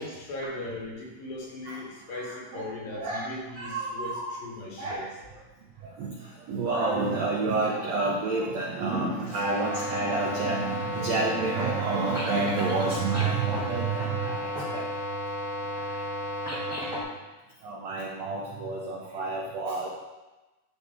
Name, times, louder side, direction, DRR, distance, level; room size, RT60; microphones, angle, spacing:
voice 1, 0.0-5.1 9.3-9.5, left 2 dB, 80° left, -2 dB, 3.2 m, -38 dB
voice 2, 2.1-3.3 3.5-4.3 4.8-5.1 5.8-14.9 15.7-16.0 17.6-19.9, right 3 dB, 75° right, -3 dB, 1.6 m, -29 dB
sound 1, 9.3-17.0, left 1 dB, 10° right, 2.0 m, -33 dB
11.5 x 4.0 x 3.6 m, 1.1 s
omnidirectional pair, 4.0 m